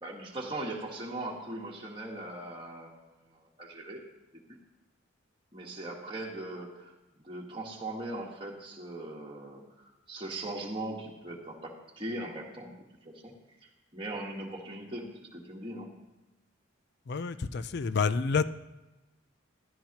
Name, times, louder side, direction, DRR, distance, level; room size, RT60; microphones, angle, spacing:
voice 1, 0.0-4.0 4.5-4.6 5.5-13.3 13.6-15.9, right 1 dB, 25° right, 1.5 m, -40 dB
voice 2, 17.0-18.4, left 5 dB, 50° left, 0.4 m, -28 dB
16.0 x 12.0 x 3.0 m
head